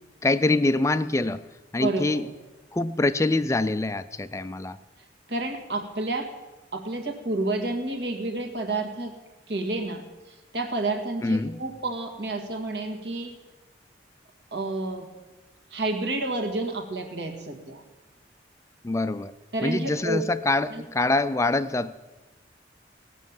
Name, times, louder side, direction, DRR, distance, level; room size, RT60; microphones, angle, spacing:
voice 1, 0.2-1.4 1.7-2.2 2.7-4.8 11.2-11.6 18.8-19.3 19.6-21.9, left 2 dB, 15° left, 13 dB, 0.3 m, -24 dB
voice 2, 1.8-2.3 5.3-6.3 6.7-9.1 9.5-10.0 10.3-13.3 14.5-15.1 15.7-17.8 19.5-20.2 20.7-20.8, right 2 dB, 65° right, 5 dB, 1.7 m, -30 dB
18.0 x 6.4 x 7.2 m, 1.1 s
head